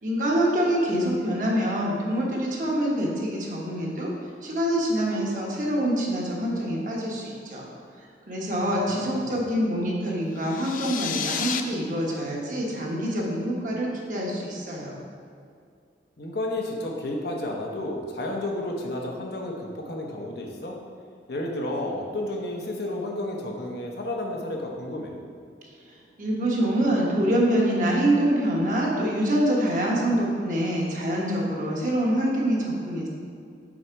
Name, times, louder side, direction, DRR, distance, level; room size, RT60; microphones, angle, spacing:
voice 1, 0.0-4.1 4.4-7.6 8.3-14.9 25.9-33.1, right 1 dB, 45° right, -3 dB, 1.1 m, -25 dB
voice 2, 8.6-9.4 16.2-20.8 21.3-25.1, left 1 dB, 65° left, 0 dB, 0.9 m, -32 dB
sound 1, 10.4-11.6, left 8 dB, 50° left, 0.3 m, -31 dB
6.3 x 4.1 x 4.6 m, 2.3 s
head